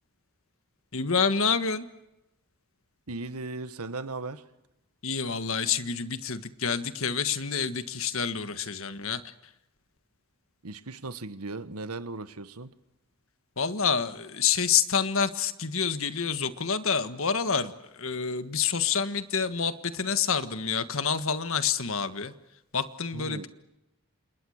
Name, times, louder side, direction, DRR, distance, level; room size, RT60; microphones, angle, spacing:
voice 1, 0.9-1.8 5.0-9.2 13.6-17.7 18.0-22.3 22.7-23.5, left 6 dB, 65° left, 1.6 m, -28 dB
voice 2, 3.1-4.4 10.6-12.7 23.1-23.5, right 3 dB, 90° right, 1.5 m, -37 dB
29.5 x 27.0 x 6.6 m
head